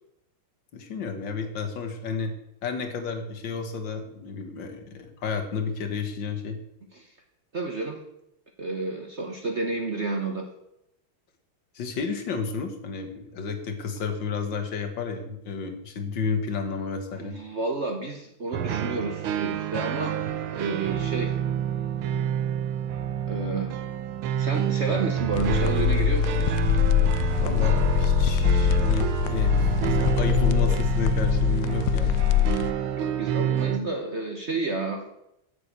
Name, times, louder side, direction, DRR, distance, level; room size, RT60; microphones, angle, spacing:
voice 1, 0.7-2.3 2.6-6.6 11.7-17.4 27.3-32.1, left 5 dB, 65° left, 5 dB, 1.9 m, -31 dB
voice 2, 7.5-8.0 8.6-10.5 17.1-20.1 20.5-21.4 22.1-22.3 23.3-23.7 24.4-26.6 31.6-32.6 33.0-35.0, right 3 dB, 40° right, 2 dB, 1.1 m, -31 dB
sound 1, 18.5-33.8, right 9 dB, 85° right, 1.6 m, -28 dB
sound 2, 25.3-32.7, left 10 dB, 80° left, 0.9 m, -23 dB
8.3 x 6.9 x 8.3 m, 0.83 s
omnidirectional pair, 2.3 m